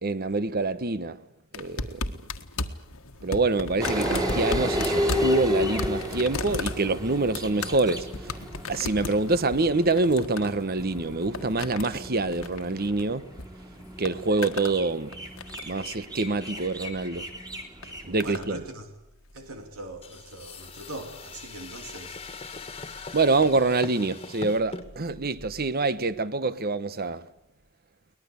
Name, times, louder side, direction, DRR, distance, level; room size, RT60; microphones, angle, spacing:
voice 1, 0.0-1.2 1.5-2.1 3.2-8.3 8.7-13.2 14.0-15.2 15.7-17.3 18.0-18.6 23.1-27.2, right 3 dB, 45° right, 1.1 m, -26 dB
sound 1, 1.5-13.5 13.8-14.8 15.1-15.8 16.8-17.1 17.8-18.5 19.4-19.5, left 3 dB, 80° left, 1.7 m, -36 dB
sound 2, 3.8-18.4, equal, 20° right, 3.4 m, -32 dB
voice 2, 17.8-18.9 19.3-22.2, right 1 dB, 90° right, 2.9 m, -41 dB
sound 3, 20.0-24.9, left 4 dB, 30° left, 1.8 m, -41 dB
23.0 x 20.0 x 8.4 m
head